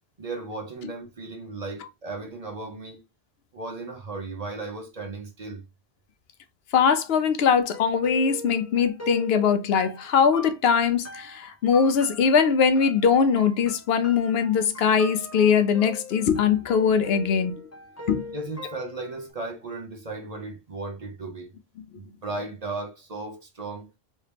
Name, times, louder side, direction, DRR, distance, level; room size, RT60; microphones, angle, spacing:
voice 1, 0.2-3.0 3.5-5.6 18.3-21.5 21.9-23.9, right 3 dB, 40° right, 0.8 m, -36 dB
voice 2, 6.7-17.6 18.1-18.2, left 6 dB, 75° left, 0.8 m, -21 dB
sound 1, 7.7-19.3, left 2 dB, 20° left, 0.5 m, -40 dB
3.2 x 2.9 x 3.3 m
omnidirectional pair, 1.1 m